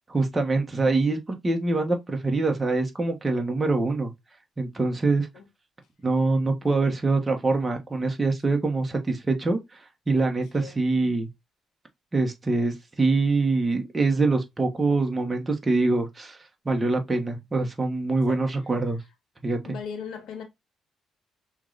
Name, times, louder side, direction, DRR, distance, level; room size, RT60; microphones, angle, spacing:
voice 1, 0.1-1.2 1.4-4.1 4.6-5.3 6.0-9.8 10.1-11.3 12.1-16.4 16.6-19.0 19.4-19.8, right 3 dB, 20° right, 1.3 m, -24 dB
voice 2, 10.2-10.8 18.3-18.4 19.6-20.4, left 7 dB, 75° left, 1.4 m, -39 dB
5.6 x 3.2 x 2.5 m
cardioid pair, 90°, 0 cm